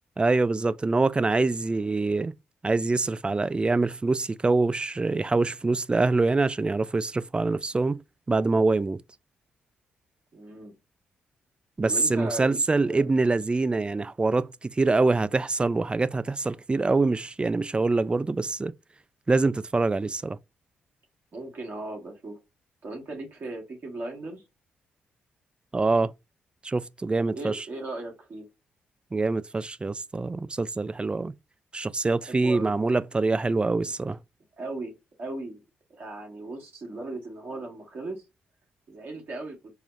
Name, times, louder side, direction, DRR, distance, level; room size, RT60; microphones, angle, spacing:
voice 1, 0.2-2.3 2.6-8.0 8.3-9.0 11.8-18.7 19.3-20.4 25.7-26.1 26.6-27.6 29.1-31.3 31.7-34.2, right 3 dB, 25° right, 0.3 m, -25 dB
voice 2, 1.7-2.1 10.3-10.7 11.8-12.6 12.9-13.1 21.3-22.4 22.8-24.4 27.3-28.5 32.2-32.8 34.6-35.6 35.9-38.2 38.9-39.6, right 2 dB, 55° right, 1.5 m, -37 dB
4.7 x 2.0 x 2.5 m
hypercardioid pair, 40°, 4 cm